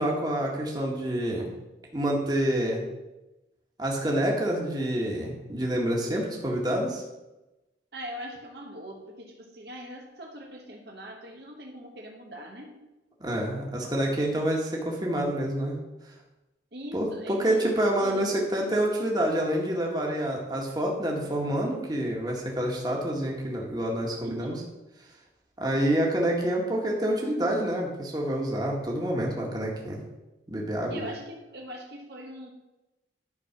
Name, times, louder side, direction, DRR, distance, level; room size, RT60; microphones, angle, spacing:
voice 1, 0.0-1.5 1.9-2.9 3.8-7.0 13.2-15.8 16.9-17.1 17.4-24.5 25.6-30.0 30.5-31.1, right 1 dB, 25° right, -1 dB, 1.7 m, -27 dB
voice 2, 7.9-12.8 16.7-17.6 18.0-18.5 24.2-24.6 30.9-32.5, equal, 65° right, 1 dB, 1.3 m, -41 dB
11.0 x 4.5 x 6.0 m, 1.0 s
head